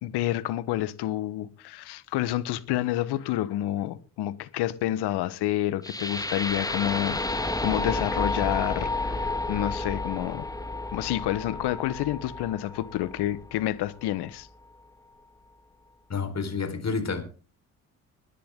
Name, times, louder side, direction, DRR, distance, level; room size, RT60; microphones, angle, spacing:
voice 1, 0.0-7.2 7.6-10.5 10.9-14.5, left 14 dB, 65° left, 1.2 m, -29 dB
sound 1, 5.8-13.9, left 2 dB, 10° left, 1.9 m, -31 dB
voice 2, 16.1-17.2, left 5 dB, 35° left, 4.5 m, -29 dB
22.0 x 10.0 x 3.8 m
hypercardioid pair, 45°, 43 cm